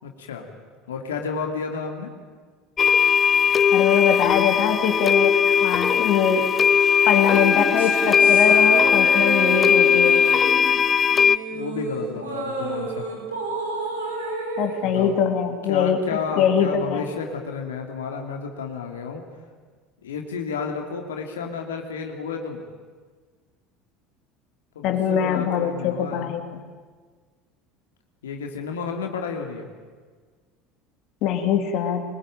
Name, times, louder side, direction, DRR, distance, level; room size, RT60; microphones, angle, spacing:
voice 1, 0.0-0.4 0.9-2.1 11.5-13.0 14.8-15.1 15.7-19.2 20.0-22.6 24.7-26.3 28.2-29.7, left 5 dB, 75° left, 3 dB, 2.7 m, -31 dB
sound 1, 2.8-11.4, left 7 dB, 30° left, 0.7 m, -18 dB
voice 2, 3.7-6.5 7.1-10.2 14.6-17.0 24.8-26.4 31.2-32.0, left 7 dB, 55° left, 5 dB, 3.0 m, -22 dB
sound 2, 7.2-15.8, right 2 dB, 85° right, 5.3 m, -31 dB
24.0 x 21.0 x 9.0 m, 1.5 s
figure-of-eight pair, 70°, 0 cm